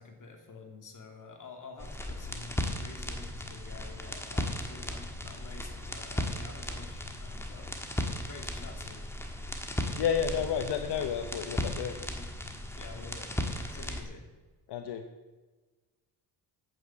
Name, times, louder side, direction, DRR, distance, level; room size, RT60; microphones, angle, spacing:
voice 1, 0.0-7.7 8.2-9.1 12.8-14.3, left 4 dB, 50° left, 3 dB, 2.6 m, -49 dB
sound 1, 1.8-14.0, left 1 dB, 5° left, 1.5 m, -36 dB
voice 2, 10.0-12.0 14.7-15.0, left 8 dB, 80° left, 7 dB, 0.9 m, -31 dB
9.0 x 8.4 x 7.3 m, 1.3 s
cardioid pair, 110°, 40 cm